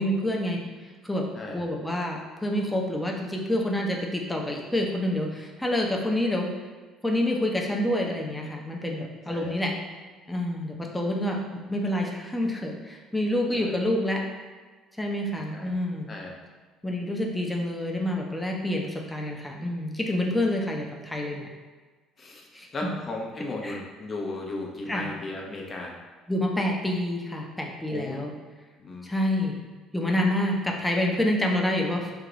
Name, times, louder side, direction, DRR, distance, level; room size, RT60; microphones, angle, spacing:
voice 1, 0.0-1.2 1.5-6.5 7.0-9.7 10.3-14.2 15.0-16.1 16.8-21.5 22.5-22.9 23.6-23.8 24.9-25.1 26.3-28.4 29.0-29.6 29.9-32.1, left 1 dB, 10° left, 0 dB, 0.7 m, -28 dB
voice 2, 22.2-26.0 27.9-28.2 28.8-29.1, left 2 dB, 35° left, -1 dB, 0.9 m, -36 dB
4.6 x 2.2 x 3.9 m, 1.4 s
supercardioid pair, 80°, 0 cm